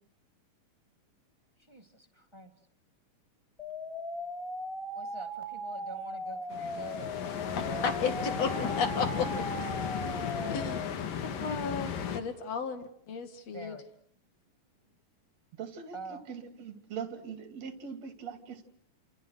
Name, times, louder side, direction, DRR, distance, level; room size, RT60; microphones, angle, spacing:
voice 1, 1.7-2.5 4.9-7.9 8.2-8.7 10.4-10.7 13.5-13.9 15.9-16.2, right 1 dB, 15° right, 6 dB, 1.3 m, -46 dB
sound 1, 3.6-10.9, equal, 10° left, 3.7 m, -38 dB
sound 2, 6.5-12.2, left 8 dB, 85° left, 3.6 m, -35 dB
voice 2, 7.6-9.8 10.5-10.8 11.2-13.8, left 5 dB, 55° left, 8 dB, 3.1 m, -34 dB
voice 3, 15.6-18.7, right 6 dB, 55° right, 8 dB, 3.7 m, -42 dB
29.5 x 28.0 x 6.5 m, 0.65 s
omnidirectional pair, 3.8 m